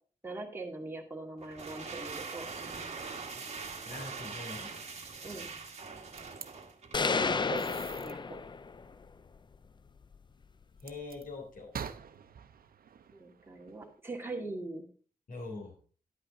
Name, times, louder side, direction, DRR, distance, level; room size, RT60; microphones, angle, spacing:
voice 1, 0.2-2.5 5.2-5.5 7.2-8.4 13.1-14.9, right 2 dB, 15° right, -1 dB, 2.2 m, -41 dB
sound 1, 1.4-7.1, right 4 dB, 50° right, 1.5 m, -42 dB
voice 2, 3.8-4.7 10.8-11.7 15.3-15.7, left 3 dB, 65° left, 0 dB, 3.6 m, -43 dB
sound 2, 6.2-6.5 7.6-8.1 10.8-11.2 11.7-14.0, right 7 dB, 80° right, 0.7 m, -45 dB
sound 3, 6.9-8.9, left 4 dB, 30° left, 0.4 m, -31 dB
11.0 x 8.7 x 3.8 m, 0.40 s
wide cardioid pair, 125°, 15 cm